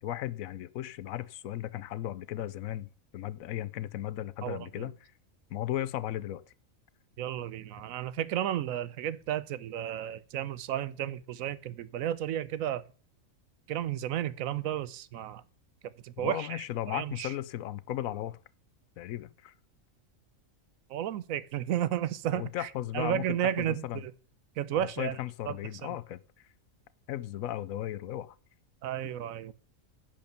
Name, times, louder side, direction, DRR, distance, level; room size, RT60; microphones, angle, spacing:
voice 1, 0.0-5.1 5.5-6.4 16.2-18.4 19.0-19.5 22.3-23.3 23.6-24.0 24.7-26.5 27.1-28.3, left 13 dB, 85° left, 1.1 m, -36 dB
voice 2, 4.4-4.9 7.2-12.8 13.7-15.4 15.8-17.3 20.9-22.7 22.9-24.1 24.6-25.2 25.5-25.6 25.8-25.9 28.8-29.5, right 11 dB, 80° right, 1.1 m, -33 dB
10.5 x 5.4 x 6.8 m
omnidirectional pair, 1.4 m